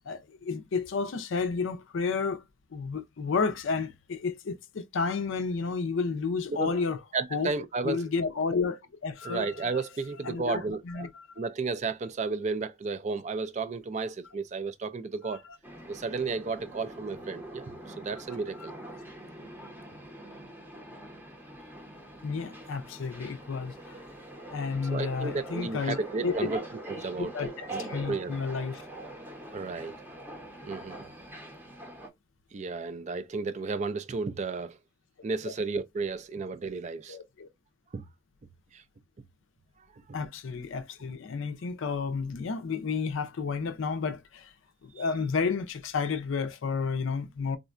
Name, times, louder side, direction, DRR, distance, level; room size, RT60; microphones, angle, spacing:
voice 1, 0.1-2.4 2.7-7.0 7.3-7.5 7.8-9.8 10.2-11.5 22.2-24.0 24.5-26.4 27.2-28.8 35.5-35.6 37.1-37.5 40.1-44.5 44.8-47.6, left 5 dB, 65° left, 0.4 m, -31 dB
voice 2, 6.5-6.8 7.1-8.0 9.2-11.1 11.4-15.4 15.9-18.7 24.9-27.3 27.7-28.3 29.5-29.9 30.6-31.0 32.5-34.8 35.2-37.2 37.9-38.0 38.7-38.8 40.1-40.2, right 4 dB, 35° right, 0.3 m, -33 dB
sound 1, 15.6-32.1, right 1 dB, 10° right, 0.7 m, -43 dB
3.6 x 2.1 x 2.4 m
head